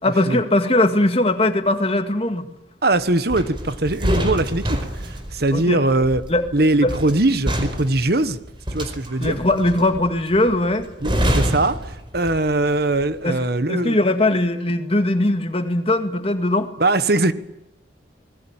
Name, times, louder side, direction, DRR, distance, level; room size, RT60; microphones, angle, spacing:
voice 1, 0.0-2.5 5.5-5.8 6.3-6.5 6.8-6.9 9.2-10.9 13.2-13.4 13.7-16.7, left 1 dB, 30° left, 2.1 m, -20 dB
voice 2, 2.8-6.2 6.5-8.4 8.7-9.4 11.0-14.0 16.8-17.3, right 2 dB, 55° right, 1.4 m, -21 dB
sound 1, 3.3-12.6 12.9-13.2, equal, 25° right, 4.8 m, -26 dB
27.5 x 20.5 x 9.0 m
head